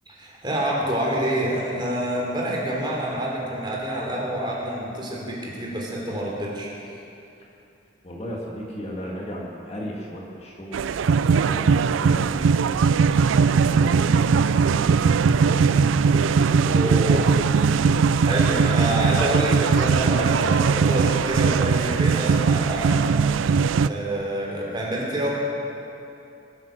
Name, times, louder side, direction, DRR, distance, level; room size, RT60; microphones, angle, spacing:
voice 1, 0.1-6.7 16.7-17.3 18.2-25.3, right 1 dB, 25° right, -3 dB, 3.2 m, -27 dB
voice 2, 8.0-12.8 13.4-16.7, equal, 35° left, -2 dB, 1.8 m, -37 dB
sound 1, 10.7-23.9, right 5 dB, 85° right, 0.4 m, -20 dB
21.5 x 9.7 x 6.5 m, 2.7 s
head